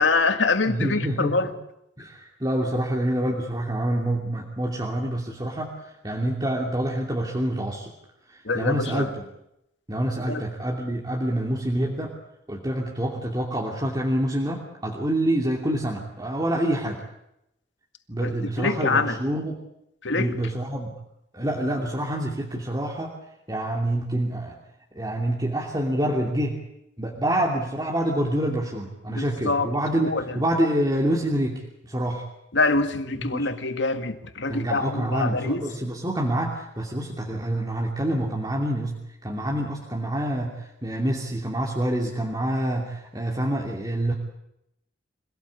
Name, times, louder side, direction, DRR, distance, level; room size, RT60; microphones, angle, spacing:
voice 1, 0.0-1.5 8.5-9.1 10.3-10.4 18.2-18.3 18.6-19.2 20.0-20.3 29.1-29.7 30.0-30.2 32.5-35.6, left 3 dB, 80° left, 8 dB, 2.0 m, -25 dB
voice 2, 0.7-1.5 2.0-7.9 8.3-9.2 9.9-12.1 12.5-17.0 18.1-19.6 20.1-20.9 21.3-23.2 23.5-24.6 24.9-26.6 27.0-32.2 33.1-33.5 34.5-44.1, right 1 dB, 20° right, -1 dB, 2.8 m, -27 dB
26.0 x 17.5 x 8.4 m, 0.82 s
head